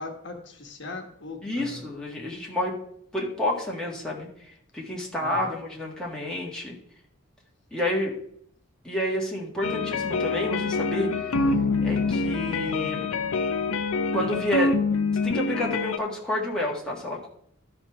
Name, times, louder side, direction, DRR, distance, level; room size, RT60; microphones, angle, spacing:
voice 1, 0.0-1.9 5.2-5.5 14.1-14.4, left 3 dB, 55° left, 3 dB, 1.3 m, -40 dB
voice 2, 1.4-2.8 3.1-4.3 4.7-6.8 7.7-8.2 8.8-11.1 11.8-13.1 14.1-14.8 15.2-17.3, left 1 dB, 5° left, -4 dB, 1.7 m, -29 dB
sound 1, 9.6-16.0, left 3 dB, 90° left, 0.6 m, -26 dB
13.0 x 4.3 x 5.8 m, 0.68 s
head